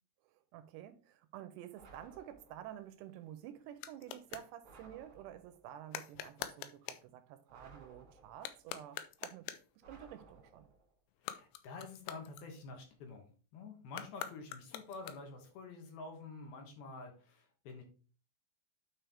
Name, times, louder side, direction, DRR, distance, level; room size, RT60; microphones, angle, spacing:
voice 1, 0.3-9.5 9.9-10.7, right 11 dB, 85° right, 2.6 m, -50 dB
sound 1, 1.7-2.8 4.6-5.7 7.5-8.6 9.8-10.9, right 3 dB, 50° right, 1.6 m, -59 dB
sound 2, 2.8-4.5 5.9-7.1 8.3-9.8 11.1-12.9 13.9-15.5, left 12 dB, 90° left, 2.9 m, -46 dB
voice 2, 11.2-13.3 13.5-17.8, left 3 dB, 70° left, 2.8 m, -48 dB
9.1 x 4.4 x 3.4 m
omnidirectional pair, 5.0 m